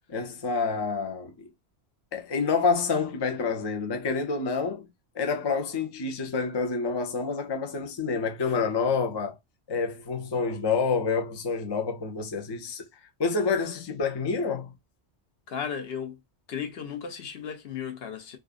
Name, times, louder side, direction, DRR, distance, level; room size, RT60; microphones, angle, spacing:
voice 1, 0.1-1.5 2.1-4.9 5.1-9.4 9.7-12.9 13.2-14.7, left 4 dB, 40° left, 0.3 m, -28 dB
voice 2, 15.5-16.2 16.5-18.4, left 7 dB, 65° left, 0.9 m, -35 dB
2.5 x 2.4 x 2.3 m
omnidirectional pair, 1.1 m